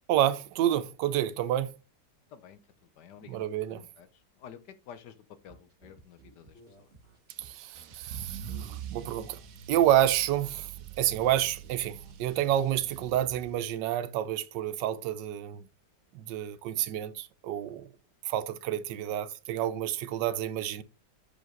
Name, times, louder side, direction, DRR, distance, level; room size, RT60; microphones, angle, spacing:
voice 1, 0.1-1.7 3.3-3.8 7.4-9.4 9.7-10.7 11.0-15.6 16.1-17.9 18.2-20.8, right 12 dB, 90° right, 1.3 m, -29 dB
voice 2, 2.3-5.2 5.4-6.9, left 8 dB, 75° left, 1.4 m, -51 dB
sound 1, 5.5-13.0, right 2 dB, 45° right, 2.6 m, -56 dB
Car / Engine starting / Accelerating revving vroom, 7.3-13.8, right 9 dB, 65° right, 1.0 m, -44 dB
6.7 x 5.1 x 3.8 m
omnidirectional pair, 1.8 m